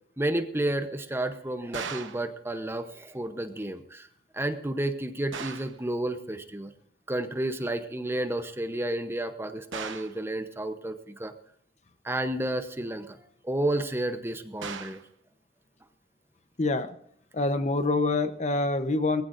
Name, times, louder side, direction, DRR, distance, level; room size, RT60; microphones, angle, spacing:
voice 1, 0.2-4.1 4.3-6.7 7.1-11.3 12.0-13.2 13.4-15.0, right 1 dB, 10° right, 9 dB, 0.8 m, -31 dB
sound 1, 1.7-2.3 5.3-5.8 9.7-10.2 14.6-15.1, right 6 dB, 80° right, 1.1 m, -37 dB
voice 2, 16.6-17.0 17.3-19.2, left 2 dB, 35° left, 10 dB, 0.9 m, -26 dB
21.5 x 15.5 x 2.6 m, 0.65 s
head